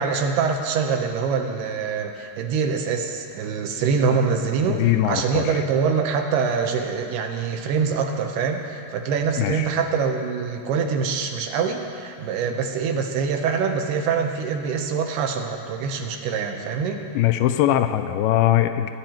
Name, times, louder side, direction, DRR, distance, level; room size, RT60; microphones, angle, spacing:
voice 1, 0.0-4.8 5.0-17.0, right 5 dB, 75° right, 4 dB, 2.9 m, -24 dB
voice 2, 4.7-5.6 9.4-9.7 17.1-18.9, left 12 dB, 85° left, 8 dB, 2.3 m, -21 dB
22.0 x 10.5 x 4.4 m, 2.4 s
omnidirectional pair, 4.9 m